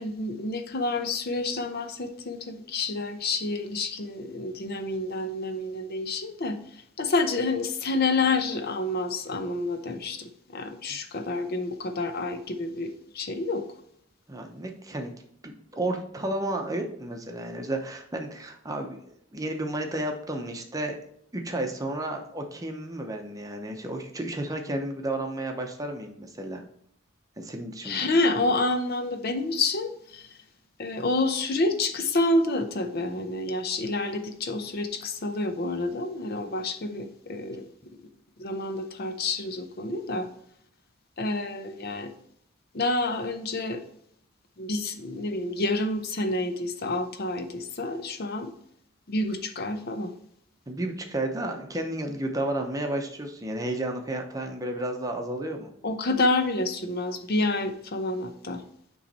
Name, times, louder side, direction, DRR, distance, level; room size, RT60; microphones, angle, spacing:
voice 1, 0.0-13.7 27.8-30.4 30.8-37.7 38.4-40.3 41.2-42.1 42.7-43.8 44.6-48.5 49.1-50.1 55.8-58.6, left 2 dB, 50° left, 7 dB, 0.6 m, -28 dB
voice 2, 14.3-15.1 15.4-19.0 19.3-21.0 21.3-26.6 27.4-28.1 50.7-55.7, right 1 dB, 15° right, 3 dB, 0.7 m, -32 dB
8.9 x 3.1 x 4.1 m, 0.70 s
head